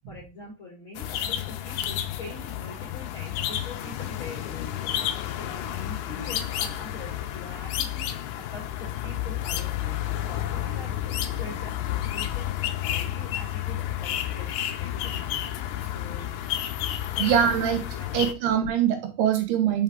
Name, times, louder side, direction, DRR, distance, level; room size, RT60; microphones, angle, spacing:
voice 1, 0.1-4.9 5.4-15.5 15.9-16.3 17.1-17.6 17.9-18.1, left 2 dB, 55° left, -3 dB, 1.4 m, -43 dB
sound 1, 0.9-18.3, left 12 dB, 80° left, 2.0 m, -31 dB
voice 2, 17.2-17.8 18.1-19.8, right 9 dB, 75° right, 5 dB, 3.1 m, -23 dB
5.8 x 5.5 x 3.6 m, 0.30 s
omnidirectional pair, 4.7 m